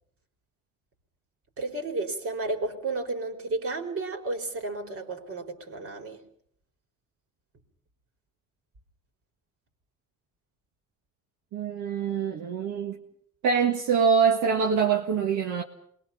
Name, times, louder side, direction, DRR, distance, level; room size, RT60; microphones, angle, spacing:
voice 1, 1.6-6.2, right 2 dB, 50° right, 4.1 m, -32 dB
voice 2, 11.5-13.0 13.4-15.6, right 6 dB, 75° right, 1.8 m, -24 dB
27.0 x 22.0 x 5.8 m
cardioid pair, 90°, 30 cm